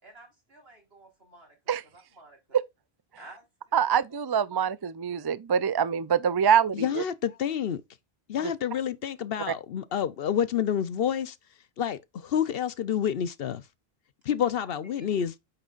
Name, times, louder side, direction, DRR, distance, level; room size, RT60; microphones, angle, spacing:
voice 1, 0.0-2.6 3.2-4.2 4.5-4.7 14.6-14.7 15.0-15.2, right 2 dB, 75° right, 4.1 m, -53 dB
voice 2, 3.7-6.9, right 8 dB, 40° right, 0.3 m, -24 dB
voice 3, 6.7-7.8 8.3-11.4 11.8-13.6 14.2-15.3, left 9 dB, 70° left, 0.9 m, -28 dB
8.8 x 6.4 x 2.4 m
omnidirectional pair, 1.0 m